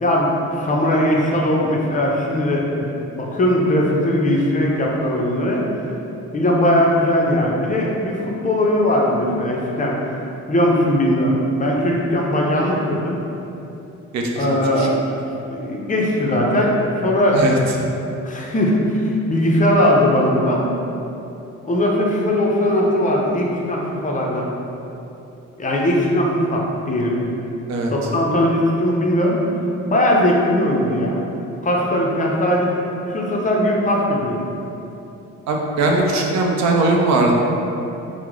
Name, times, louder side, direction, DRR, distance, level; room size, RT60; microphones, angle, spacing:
voice 1, 0.0-2.9 3.1-5.6 6.3-10.0 10.5-13.2 14.4-15.1 15.5-17.4 18.2-20.7 21.6-24.5 25.6-27.2 27.9-29.4 29.9-31.2 31.6-32.7 33.1-34.4, left 1 dB, 25° left, -2 dB, 0.5 m, -19 dB
voice 2, 14.1-14.9 17.3-17.6 27.7-27.9 35.5-37.3, right 2 dB, 65° right, 0 dB, 0.5 m, -19 dB
3.0 x 2.0 x 3.6 m, 2.9 s
cardioid pair, 90°, 30 cm